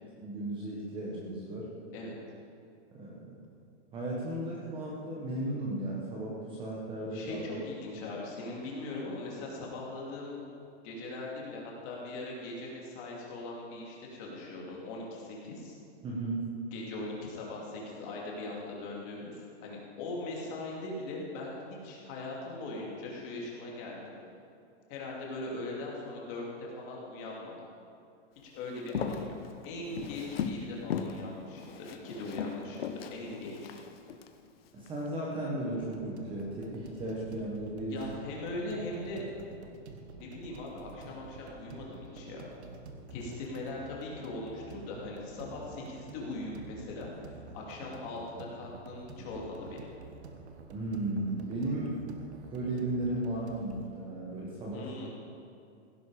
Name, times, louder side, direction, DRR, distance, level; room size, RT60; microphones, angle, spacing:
voice 1, 0.2-1.7 2.9-3.4 3.9-7.5 16.0-16.5 34.7-38.0 50.7-52.0 52.5-54.9, right 1 dB, 15° right, -4 dB, 1.3 m, -35 dB
voice 2, 7.1-10.4 10.8-15.7 16.7-24.1 24.9-27.6 28.5-29.4 29.6-33.8 37.9-39.2 40.2-42.5 43.1-47.1 47.5-49.9 54.7-55.1, left 2 dB, 30° left, -3 dB, 2.8 m, -40 dB
Walk footsteps, 28.8-30.6 30.9-31.2 31.6-34.3 34.8-35.1, left 7 dB, 50° left, 1.1 m, -37 dB
sound 1, 35.8-53.9, right 4 dB, 60° right, 1.5 m, -49 dB
16.5 x 10.5 x 5.0 m, 2.5 s
hypercardioid pair, 165°, 36 cm